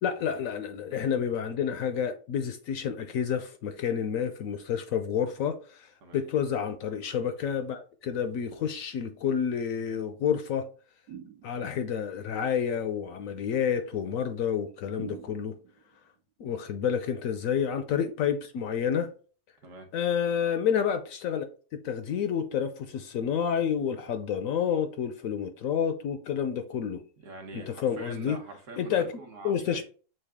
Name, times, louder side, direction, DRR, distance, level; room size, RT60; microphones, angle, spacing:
voice 1, 0.0-10.7 11.4-15.5 16.4-19.1 19.9-21.5 21.8-27.0 27.5-28.4 28.8-29.1 29.4-29.8, left 8 dB, 70° left, 0.9 m, -29 dB
sound 1, 11.1-11.9 15.0-15.9, right 10 dB, 85° right, 1.2 m, -44 dB
voice 2, 27.2-29.8, right 3 dB, 60° right, 1.2 m, -44 dB
6.5 x 2.3 x 3.5 m
omnidirectional pair, 1.6 m